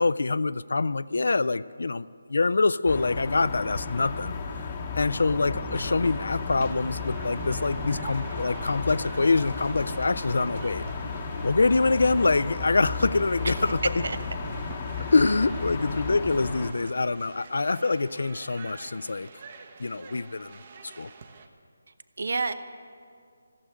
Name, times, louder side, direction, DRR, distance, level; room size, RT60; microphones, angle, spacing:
voice 1, 0.0-4.7 4.9-10.8 11.4-14.0 15.1-19.3 19.8-21.1, left 3 dB, 70° left, 18 dB, 0.4 m, -25 dB
sound 1, 2.9-16.7, left 4 dB, 25° left, 0.9 m, -34 dB
sound 2, 5.0-10.6, right 5 dB, 10° right, 0.5 m, -45 dB
sound 3, 6.0-21.5, right 4 dB, 35° right, 1.0 m, -47 dB
voice 2, 22.2-22.5, right 3 dB, 65° right, 12 dB, 0.8 m, -30 dB
15.0 x 7.6 x 9.9 m, 2.2 s
figure-of-eight pair, 165°, 0 cm